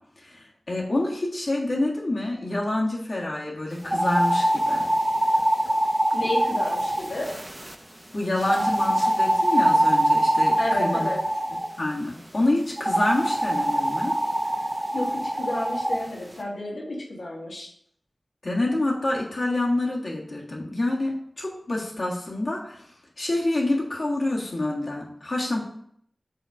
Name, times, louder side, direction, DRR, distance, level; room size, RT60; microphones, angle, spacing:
voice 1, 0.2-4.9 8.1-11.1 11.8-14.1 18.4-22.9 23.2-25.6, left 2 dB, 55° left, -4 dB, 1.6 m, -27 dB
sound 1, 3.8-7.7 8.4-11.7 12.8-16.0, right 1 dB, 20° right, 0.8 m, -23 dB
voice 2, 6.1-7.3 10.6-11.2 14.9-17.7, left 1 dB, 90° left, -3 dB, 1.6 m, -31 dB
5.5 x 3.9 x 4.7 m, 0.66 s
wide cardioid pair, 75°, 0 cm